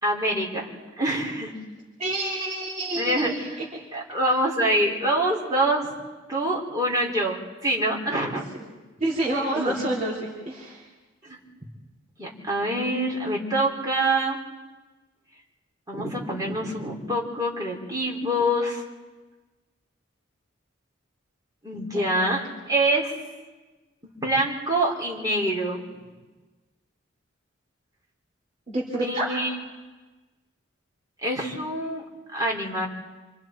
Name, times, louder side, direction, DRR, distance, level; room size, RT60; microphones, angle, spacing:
voice 1, 0.0-0.7 1.0-1.5 3.0-3.6 3.9-5.9 6.3-8.6 9.5-9.8 11.2-11.4 12.2-14.4 15.9-18.8 21.6-23.1 24.2-25.9 29.0-29.5 31.2-32.0 32.3-32.9, right 1 dB, 20° right, -3 dB, 4.2 m, -25 dB
voice 2, 2.0-3.7 9.0-10.8 21.9-22.4 28.7-29.3, right 1 dB, 35° right, -6 dB, 3.4 m, -28 dB
28.5 x 25.5 x 4.6 m, 1.2 s
head